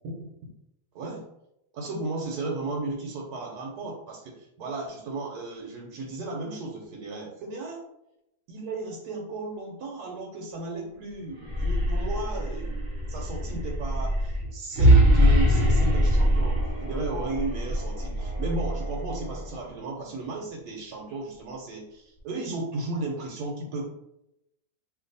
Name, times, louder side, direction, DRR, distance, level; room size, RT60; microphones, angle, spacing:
voice 1, 1.7-7.8 8.5-12.7 13.1-23.9, right 3 dB, 75° right, -1 dB, 1.2 m, -34 dB
sound 1, 11.3-19.5, equal, 45° right, 0.6 m, -23 dB
sound 2, 15.1-19.6 20.2-20.3, left 2 dB, 75° left, 0.5 m, -45 dB
2.6 x 2.6 x 3.9 m, 0.83 s
omnidirectional pair, 1.7 m